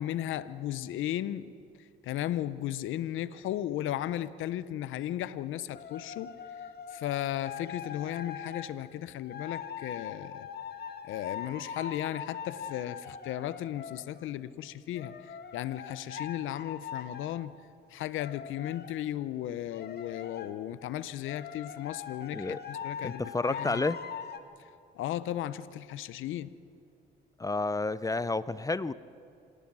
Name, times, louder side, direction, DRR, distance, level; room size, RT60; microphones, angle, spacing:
voice 1, 0.0-1.5 2.0-6.3 6.9-10.5 11.0-17.6 17.9-23.8 24.9-26.5, left 12 dB, 80° left, 0.7 m, -35 dB
sound 1, 5.7-8.7 9.2-14.3 14.9-17.4 18.1-19.0 19.7-20.5 21.2-24.4, left 7 dB, 55° left, 1.5 m, -42 dB
voice 2, 23.0-24.0 27.4-28.9, left 3 dB, 15° left, 0.6 m, -30 dB
26.5 x 18.0 x 6.2 m
cardioid pair, 90°, 20 cm